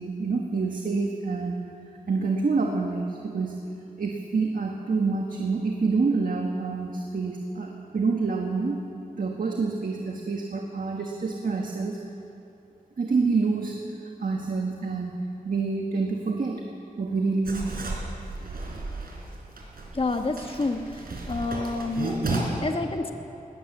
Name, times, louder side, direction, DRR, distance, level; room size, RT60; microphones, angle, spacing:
voice 1, 0.0-1.6 2.1-3.6 4.0-8.8 9.1-12.0 13.0-13.8 14.2-15.2 15.4-16.6 17.0-17.8, right 4 dB, 65° right, 1 dB, 1.6 m, -27 dB
Writing, 17.4-22.4, right 3 dB, 85° right, 4.0 m, -34 dB
voice 2, 19.9-20.8 21.3-23.1, left 3 dB, 40° left, 6 dB, 1.4 m, -28 dB
20.5 x 18.0 x 7.3 m, 2.8 s
wide cardioid pair, 110°, 15 cm